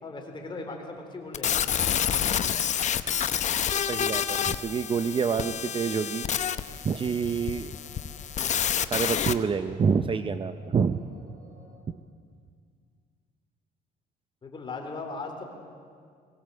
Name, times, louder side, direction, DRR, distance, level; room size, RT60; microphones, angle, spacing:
voice 1, 0.0-1.7 14.4-15.4, left 3 dB, 30° left, 2 dB, 3.8 m, -38 dB
sound 1, 1.3-9.3, left 9 dB, 45° left, 0.8 m, -28 dB
voice 2, 3.8-6.3 6.8-7.8 8.8-11.0 11.9-12.0, right 6 dB, 30° right, 11 dB, 0.6 m, -27 dB
sound 2, 3.9-11.8, right 1 dB, 60° right, 4.8 m, -56 dB
22.5 x 17.0 x 7.7 m, 2.1 s
cardioid pair, 110°, 17 cm